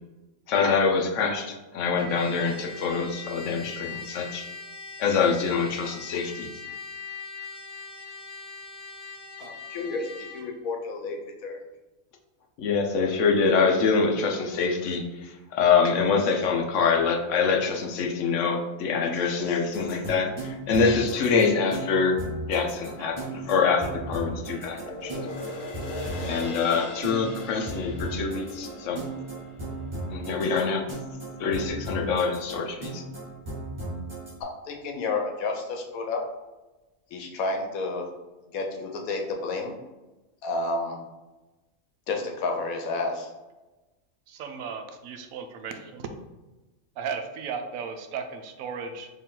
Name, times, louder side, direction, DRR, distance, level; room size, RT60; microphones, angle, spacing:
voice 1, 0.5-4.4 5.0-6.5 12.6-22.2 22.5-25.3 26.2-29.0 30.1-30.8 31.4-33.0, left 5 dB, 70° left, 2 dB, 0.9 m, -25 dB
Trumpet, 1.9-10.5, left 5 dB, 20° left, 1.0 m, -41 dB
voice 2, 9.4-11.2 11.4-11.6 34.4-36.2 37.1-38.1 38.5-39.7 40.4-41.0 42.1-43.3, left 3 dB, 90° left, 2 dB, 1.2 m, -30 dB
sound 1, 19.7-34.3, right 2 dB, 20° right, 1.3 m, -36 dB
sound 2, 24.7-31.3 31.8-31.9, left 2 dB, 50° left, 0.7 m, -40 dB
voice 3, 44.3-46.1 47.0-49.1, right 6 dB, 80° right, 6 dB, 1.0 m, -35 dB
4.5 x 3.0 x 3.7 m, 1.1 s
omnidirectional pair, 1.4 m